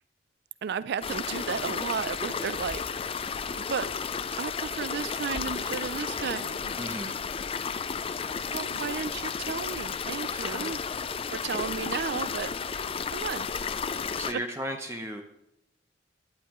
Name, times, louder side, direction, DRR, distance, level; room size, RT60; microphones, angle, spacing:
voice 1, 0.6-2.8 3.6-3.9 4.4-7.0 8.5-10.8 11.3-12.5 13.1-13.5 14.3-14.4, right 6 dB, 60° right, 16 dB, 0.4 m, -33 dB
sound 1, 1.0-14.3, left 6 dB, 30° left, 0.5 m, -33 dB
voice 2, 6.8-7.2 10.4-10.7 14.2-15.2, equal, 15° right, 4 dB, 0.9 m, -35 dB
18.0 x 11.5 x 3.0 m, 0.84 s
head